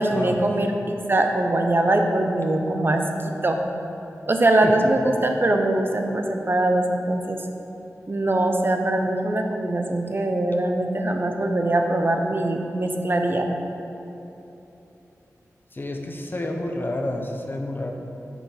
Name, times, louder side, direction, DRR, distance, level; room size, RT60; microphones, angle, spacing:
voice 1, 0.0-3.6 4.3-7.4 8.1-13.5, right 1 dB, 40° right, 4 dB, 0.6 m, -22 dB
voice 2, 15.7-17.9, left 1 dB, 40° left, 2 dB, 0.7 m, -29 dB
5.3 x 4.6 x 4.4 m, 3.0 s
cardioid pair, 50°, 6 cm